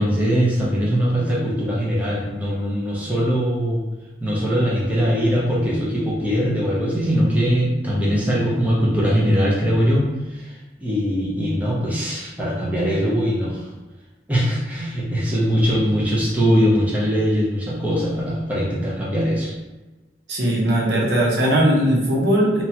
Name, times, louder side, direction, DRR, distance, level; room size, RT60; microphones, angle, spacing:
voice 1, 0.0-3.8 4.2-10.5 10.8-13.7 14.3-19.5, equal, 10° right, -6 dB, 0.5 m, -21 dB
voice 2, 20.3-22.6, right 1 dB, 80° right, -4 dB, 0.8 m, -19 dB
2.9 x 2.2 x 2.7 m, 1.1 s
head